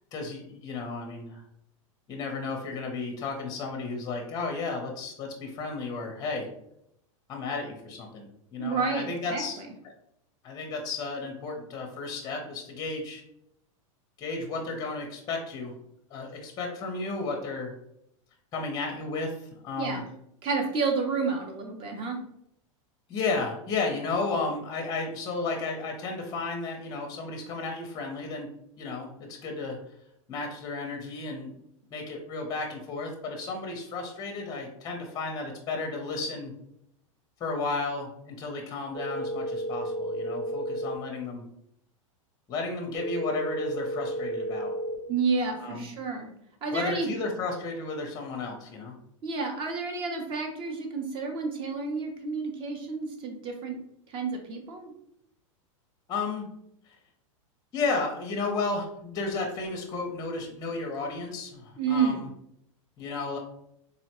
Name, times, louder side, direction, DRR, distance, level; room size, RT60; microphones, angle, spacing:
voice 1, 0.1-1.4 2.1-6.5 7.3-9.9 10.4-13.2 14.2-15.7 16.1-17.7 18.5-20.0 23.1-28.5 28.8-29.8 30.3-31.5 31.9-36.5 37.4-41.4 42.5-44.7 45.6-45.9 46.7-48.9 56.1-56.5 56.8-57.0 57.7-62.3 63.0-63.4, left 3 dB, 20° left, 3 dB, 0.6 m, -33 dB
voice 2, 8.6-9.4 19.8-20.0 20.4-22.2 45.1-46.3 46.6-47.1 49.2-53.8 54.1-54.9 61.8-62.2, right 4 dB, 30° right, 4 dB, 0.6 m, -30 dB
sound 1, 38.9-41.0 42.9-45.0, equal, 75° right, 1.3 m, -32 dB
3.9 x 2.1 x 2.9 m, 0.75 s
supercardioid pair, 135°, 18 cm